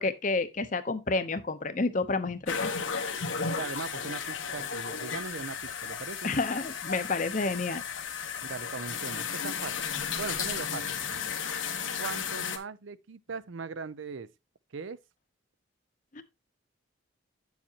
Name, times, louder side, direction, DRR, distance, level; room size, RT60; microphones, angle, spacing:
voice 1, 0.0-2.7 6.2-7.8 16.1-16.2, left 3 dB, 40° left, 0.7 m, -30 dB
sound 1, 2.5-12.6, left 6 dB, 80° left, 1.1 m, -34 dB
voice 2, 3.3-6.3 8.4-9.8 10.2-11.0 12.0-14.3 14.7-15.0, right 5 dB, 75° right, 0.5 m, -39 dB
8.6 x 7.2 x 2.8 m
head